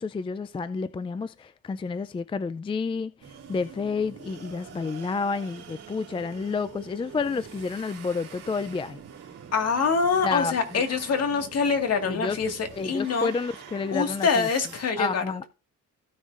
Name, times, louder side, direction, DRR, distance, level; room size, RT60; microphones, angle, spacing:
voice 1, 0.0-3.1 3.5-9.0 10.2-10.5 12.1-12.4 12.8-14.5 15.0-15.4, left 4 dB, 20° left, 0.4 m, -30 dB
sound 1, 3.2-14.8, right 7 dB, 55° right, 2.5 m, -45 dB
voice 2, 9.5-13.3 13.9-15.4, left 5 dB, 55° left, 1.9 m, -25 dB
15.5 x 6.3 x 2.5 m
cardioid pair, 90°, 30 cm